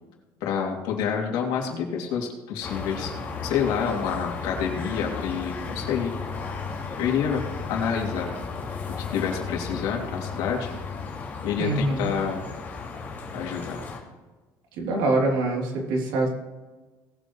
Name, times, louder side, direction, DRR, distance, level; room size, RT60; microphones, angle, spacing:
voice 1, 0.4-3.1 3.4-6.1 7.0-7.4 7.7-8.3 9.0-10.7 11.4-12.5 13.3-13.8, left 7 dB, 80° left, 0 dB, 2.9 m, -28 dB
sound 1, 2.6-14.0, left 4 dB, 25° left, 2.7 m, -34 dB
voice 2, 11.6-12.1 14.8-16.3, right 2 dB, 85° right, -1 dB, 3.3 m, -24 dB
19.0 x 8.0 x 3.2 m, 1.2 s
cardioid pair, 150°, 8 cm